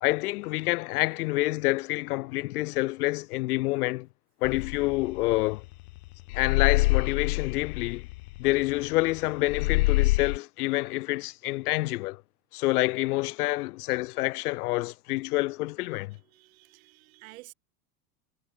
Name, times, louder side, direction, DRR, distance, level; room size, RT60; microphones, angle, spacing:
voice 1, 0.0-4.1 4.4-5.6 6.3-8.1 8.4-12.2 12.5-16.2, left 20 dB, 90° left, 1.0 m, -27 dB
sound 1, 4.4-5.9 6.3-9.2 9.5-10.4, left 22 dB, 75° left, 0.8 m, -26 dB
voice 2, 15.9-17.5, right 20 dB, 65° right, 2.7 m, -52 dB
supercardioid pair, 175°, 44 cm